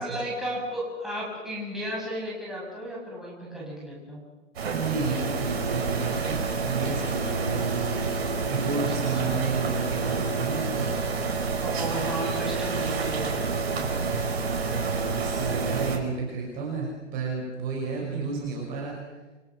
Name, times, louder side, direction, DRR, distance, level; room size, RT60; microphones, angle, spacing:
voice 1, 0.0-4.2 8.9-9.3 11.6-14.2 18.0-18.5, right 1 dB, ahead, -5 dB, 7.3 m, -35 dB
sound 1, 4.6-16.0, right 4 dB, 55° right, 5.3 m, -28 dB
voice 2, 4.7-8.1 8.5-10.9 14.6-18.9, right 4 dB, 25° right, -1 dB, 5.7 m, -32 dB
29.0 x 24.0 x 6.2 m, 1.2 s
hypercardioid pair, 145°, 37 cm